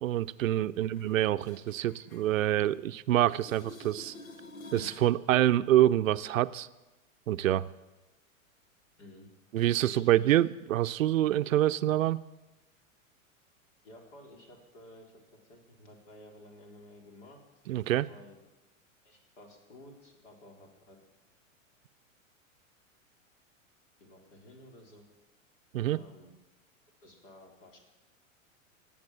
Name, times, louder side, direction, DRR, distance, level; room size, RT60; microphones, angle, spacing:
voice 1, 0.0-4.1 4.7-6.7 7.3-7.7 9.5-12.2 17.7-18.1 25.7-26.0, right 13 dB, 75° right, 15 dB, 0.6 m, -26 dB
sound 1, 0.9-3.0 3.3-5.2 10.9-11.0, left 2 dB, 90° left, 1.4 m, -49 dB
voice 2, 9.0-9.3 9.9-10.3 13.8-17.4 18.0-18.4 19.0-21.0 24.0-25.0 25.9-26.3 27.0-27.8, left 1 dB, 60° left, 2 dB, 4.0 m, -53 dB
18.0 x 7.5 x 7.4 m, 1.1 s
hypercardioid pair, 100°, 40 cm